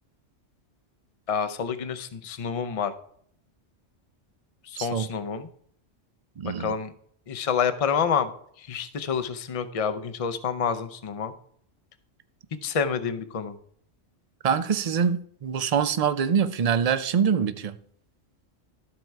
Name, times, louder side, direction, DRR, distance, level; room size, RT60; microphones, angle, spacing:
voice 1, 1.3-2.9 4.7-5.5 6.6-6.9 7.3-8.3 8.6-11.3 12.6-13.5, left 6 dB, 40° left, 0.6 m, -28 dB
voice 2, 4.8-5.1 6.4-6.7 14.4-17.8, right 7 dB, 45° right, 0.5 m, -24 dB
13.5 x 4.5 x 4.6 m
omnidirectional pair, 1.2 m